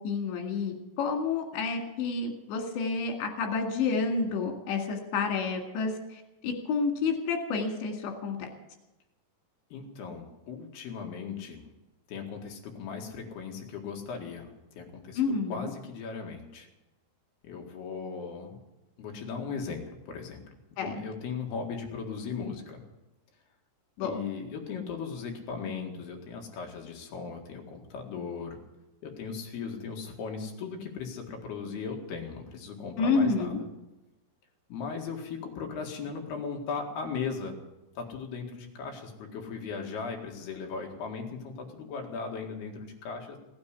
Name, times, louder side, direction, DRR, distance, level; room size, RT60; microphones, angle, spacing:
voice 1, 0.0-8.5 15.2-15.7 20.8-21.0 24.0-24.1 33.0-33.6, left 4 dB, 85° left, 3 dB, 4.4 m, -29 dB
voice 2, 9.7-11.6 12.1-15.2 15.5-16.7 17.4-18.6 19.0-20.4 20.8-22.8 24.0-28.6 29.0-33.6 34.7-37.6 38.0-43.4, left 5 dB, 65° left, 2 dB, 3.9 m, -37 dB
17.0 x 9.6 x 8.3 m, 0.99 s
omnidirectional pair, 5.0 m